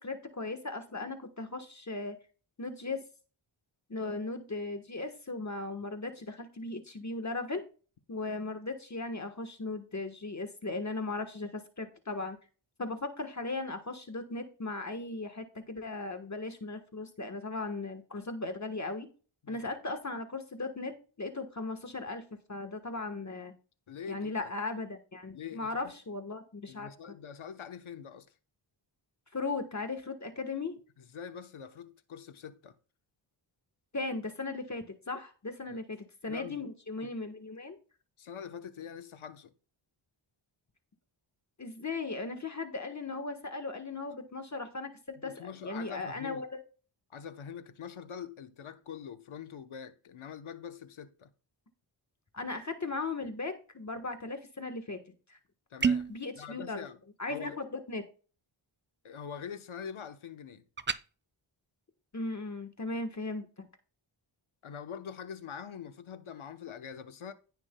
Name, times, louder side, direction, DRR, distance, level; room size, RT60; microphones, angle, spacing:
voice 1, 0.0-2.2 2.6-3.0 3.9-7.6 8.1-12.4 12.8-19.1 19.5-22.2 22.5-23.5 24.1-26.9 29.3-30.8 33.9-36.0 36.2-37.8 41.6-46.5 52.3-55.0 55.3-55.4 56.1-56.8 57.2-58.0 62.1-63.5, left 3 dB, 35° left, 1.3 m, -37 dB
voice 2, 23.9-24.5 25.3-25.9 26.7-28.3 31.0-32.7 35.7-35.8 36.3-36.7 37.0-37.1 38.2-39.5 45.2-46.4 47.1-51.3 55.7-56.1 56.4-57.0 57.3-57.6 59.0-60.6 64.6-67.3, left 7 dB, 75° left, 1.0 m, -44 dB
sound 1, 55.8-56.2 60.8-61.0, right 5 dB, 25° right, 0.5 m, -28 dB
16.5 x 5.9 x 2.2 m
wide cardioid pair, 75°, 49 cm